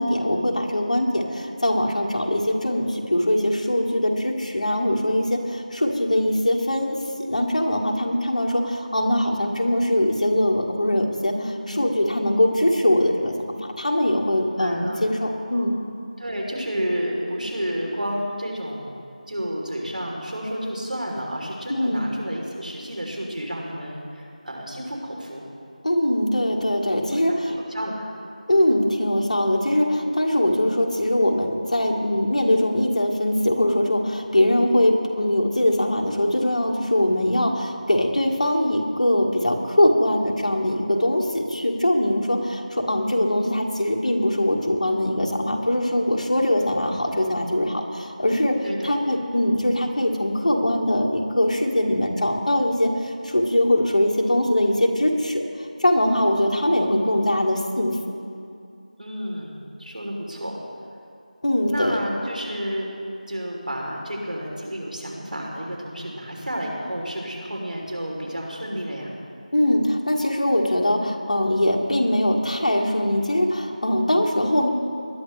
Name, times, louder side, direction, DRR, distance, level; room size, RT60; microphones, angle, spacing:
voice 1, 0.0-13.3 13.6-15.8 21.7-22.1 25.8-27.6 28.5-48.6 48.8-58.0 61.4-62.0 69.5-74.7, left 1 dB, 55° left, 1 dB, 1.7 m, -22 dB
voice 2, 11.3-11.9 14.6-15.1 15.5-15.7 16.2-25.4 27.1-28.1 48.6-48.9 59.0-60.6 61.7-62.9 63.3-69.1, equal, 75° right, -1 dB, 3.3 m, -31 dB
20.0 x 11.0 x 3.3 m, 2.5 s
figure-of-eight pair, 175°, 5 cm